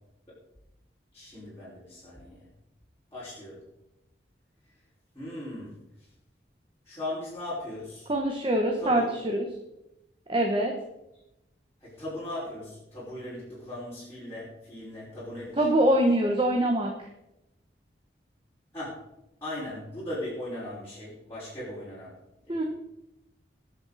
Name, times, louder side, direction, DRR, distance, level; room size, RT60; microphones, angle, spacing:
voice 1, 1.1-2.5 3.1-3.7 5.1-5.8 6.9-8.1 8.8-9.1 11.8-15.6 18.7-19.1 19.4-22.2 22.4-22.7, left 1 dB, 15° left, -12 dB, 5.3 m, -38 dB
voice 2, 8.1-9.0 9.3-9.5 10.3-10.7 15.6-17.1 22.5-22.6, right 1 dB, 30° right, 2 dB, 1.3 m, -24 dB
21.0 x 7.2 x 4.2 m, 0.89 s
head